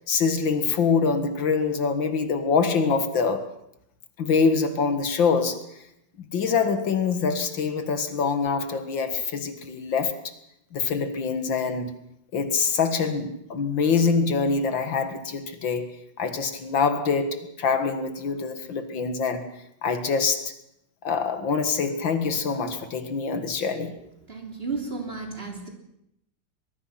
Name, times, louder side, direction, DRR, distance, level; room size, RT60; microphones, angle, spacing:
voice 1, 0.1-3.5 4.2-5.6 6.2-10.3 10.7-12.0 12.3-19.5 19.8-20.5 21.0-24.0, left 5 dB, 80° left, 2.5 m, -25 dB
voice 2, 24.3-25.7, right 4 dB, 30° right, 3.6 m, -33 dB
23.5 x 21.0 x 5.8 m
omnidirectional pair, 2.0 m